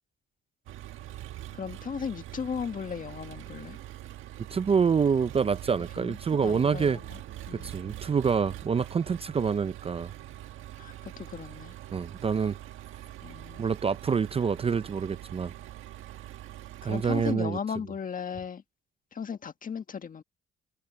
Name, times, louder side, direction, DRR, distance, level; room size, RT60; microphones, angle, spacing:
Engine, 0.7-17.4, right 13 dB, 85° right, 1.6 m, -43 dB
voice 1, 1.5-3.8 6.0-7.2 7.5-7.7 10.8-11.7 13.2-13.7 16.8-18.6 19.1-20.2, left 6 dB, 45° left, 1.6 m, -36 dB
voice 2, 4.5-7.0 7.5-10.1 11.9-12.6 13.6-15.5 16.8-17.6, right 6 dB, 30° right, 0.5 m, -27 dB
cardioid pair, 90°, 20 cm